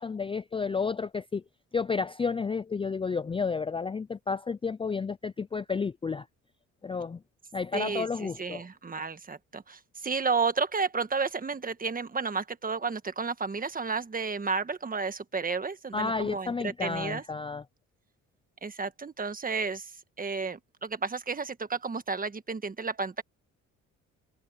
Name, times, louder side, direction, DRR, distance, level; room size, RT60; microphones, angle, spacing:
voice 1, 0.0-1.4 1.7-6.3 6.8-7.2 7.5-8.6 15.9-17.6, left 5 dB, 20° left, 0.4 m, -31 dB
voice 2, 7.7-17.2 18.6-19.9 20.2-23.2, right 4 dB, 30° right, 1.5 m, -32 dB
cardioid pair, 90°, 30 cm